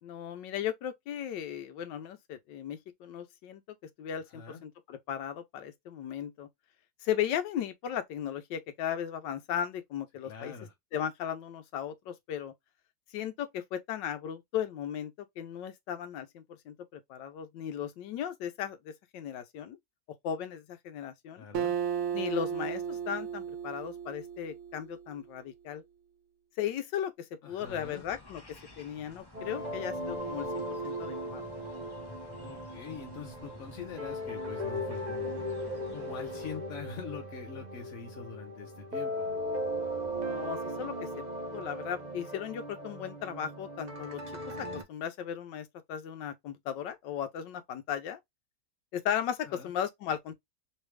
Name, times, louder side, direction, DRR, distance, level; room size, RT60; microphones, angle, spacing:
voice 1, 0.0-3.6 4.0-6.5 7.0-10.5 10.9-12.5 13.1-19.8 20.2-21.5 22.1-25.8 26.6-31.5 40.1-41.1 41.4-44.2 44.6-48.2 48.9-50.3, left 9 dB, 85° left, 1.3 m, -36 dB
voice 2, 4.3-4.6 10.2-10.7 21.4-21.7 27.4-28.0 32.4-35.4 35.9-39.3 49.4-49.7, left 6 dB, 55° left, 1.0 m, -44 dB
Acoustic guitar, 21.5-25.1, right 8 dB, 70° right, 1.0 m, -34 dB
sound 1, 27.6-36.6, left 2 dB, 25° left, 0.5 m, -52 dB
sound 2, 29.3-44.8, equal, 85° right, 0.3 m, -37 dB
3.3 x 3.2 x 3.1 m
omnidirectional pair, 1.9 m